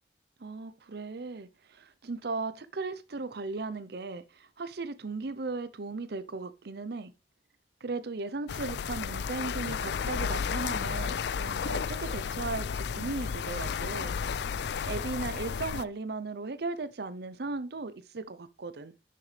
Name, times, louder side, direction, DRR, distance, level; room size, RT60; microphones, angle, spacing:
voice 1, 0.4-7.1 7.8-14.4 14.8-18.9, right 3 dB, 65° right, 0.7 m, -37 dB
sound 1, 8.5-15.8, left 6 dB, 70° left, 0.4 m, -33 dB
11.0 x 6.9 x 3.3 m
head